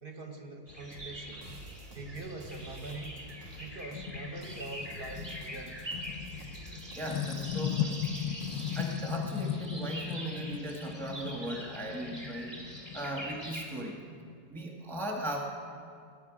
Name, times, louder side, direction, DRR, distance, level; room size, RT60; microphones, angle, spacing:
voice 1, 0.0-1.5 1.9-3.3 3.6-6.0, right 2 dB, 40° right, 3 dB, 0.9 m, -43 dB
sound 1, 0.7-13.7, equal, 15° right, 1.9 m, -44 dB
sound 2, 0.9-8.9, equal, 70° right, 2.3 m, -49 dB
sound 3, 3.3-13.4, left 10 dB, 75° left, 1.1 m, -38 dB
voice 2, 6.9-8.0 8.7-12.6 12.9-14.0 14.5-15.4, right 1 dB, ahead, 0 dB, 0.9 m, -37 dB
19.0 x 8.7 x 4.9 m, 2.4 s
omnidirectional pair, 2.0 m